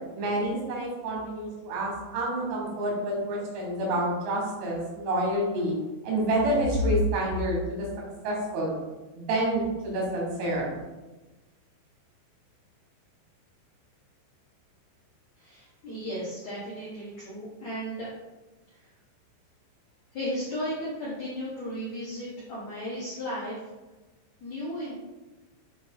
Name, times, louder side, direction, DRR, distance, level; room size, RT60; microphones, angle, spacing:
voice 1, 0.1-5.7 6.0-7.9 8.2-8.7 9.1-10.7, right 1 dB, 90° right, -3 dB, 4.3 m, -28 dB
voice 2, 15.4-18.1 18.7-18.9 20.1-23.6 24.4-25.0, equal, 85° left, -8 dB, 1.5 m, -35 dB
8.6 x 2.9 x 3.8 m, 1.1 s
omnidirectional pair, 5.3 m